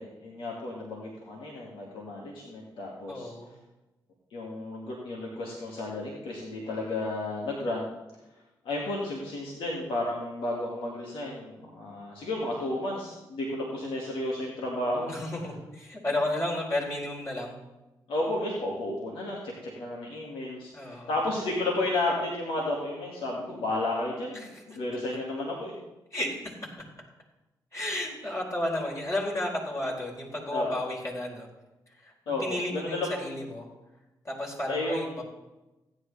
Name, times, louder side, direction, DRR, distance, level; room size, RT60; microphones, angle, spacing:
voice 1, 0.0-3.3 4.3-7.9 8.7-15.1 18.1-25.7 30.5-30.7 32.3-33.3 34.7-35.1, left 2 dB, 75° left, -3 dB, 2.2 m, -32 dB
voice 2, 3.1-3.5 15.1-17.6 20.7-21.1 24.3-24.6 26.1-26.7 27.7-31.5 32.0-33.7 34.2-35.2, left 1 dB, 35° left, -3 dB, 4.3 m, -33 dB
16.0 x 9.5 x 3.4 m, 1.0 s
supercardioid pair, 50°, 9 cm